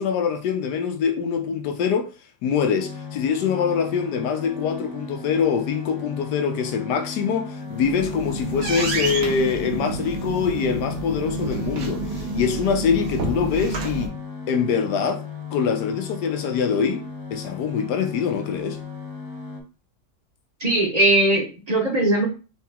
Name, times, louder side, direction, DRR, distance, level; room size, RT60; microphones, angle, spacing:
voice 1, 0.0-2.1 2.4-14.1 14.5-15.2 15.5-17.0 17.3-18.8, left 6 dB, 80° left, 1.3 m, -24 dB
sound 1, 2.8-19.6, left 6 dB, 50° left, 0.8 m, -36 dB
sound 2, 7.6-14.1, right 3 dB, 65° right, 1.2 m, -29 dB
voice 2, 20.6-22.3, right 2 dB, 35° right, 0.7 m, -19 dB
3.9 x 2.8 x 3.4 m
omnidirectional pair, 1.8 m